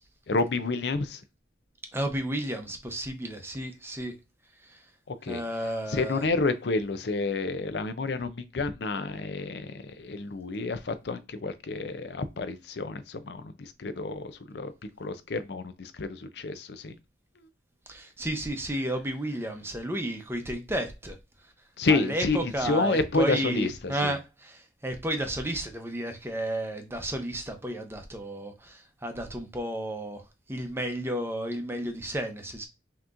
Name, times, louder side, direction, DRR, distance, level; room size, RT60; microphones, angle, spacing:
voice 1, 0.3-1.2 5.1-5.4 5.9-14.7 15.0-17.0 21.8-24.2, left 3 dB, 65° left, 0.6 m, -29 dB
voice 2, 1.9-4.1 4.6-4.8 5.3-6.2 17.9-21.2 21.9-30.2 30.5-32.7, right 1 dB, 15° right, 0.7 m, -32 dB
5.7 x 2.9 x 2.5 m
head